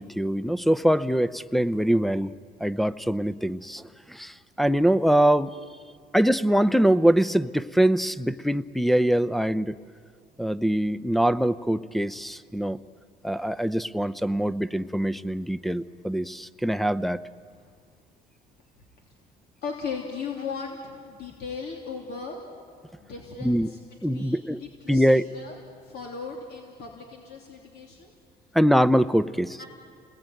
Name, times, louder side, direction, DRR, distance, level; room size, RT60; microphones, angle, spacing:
voice 1, 0.0-2.3 2.6-4.3 4.6-5.5 6.1-9.7 10.4-12.8 13.2-17.2 23.4-23.7 24.0-24.6 24.9-25.2 28.5-29.6, equal, ahead, 15 dB, 0.6 m, -23 dB
voice 2, 19.6-22.4 23.0-25.6 25.8-28.1 29.6-29.7, left 5 dB, 70° left, 0 dB, 3.2 m, -37 dB
29.5 x 20.5 x 9.2 m, 2.2 s
cardioid pair, 110°, 17 cm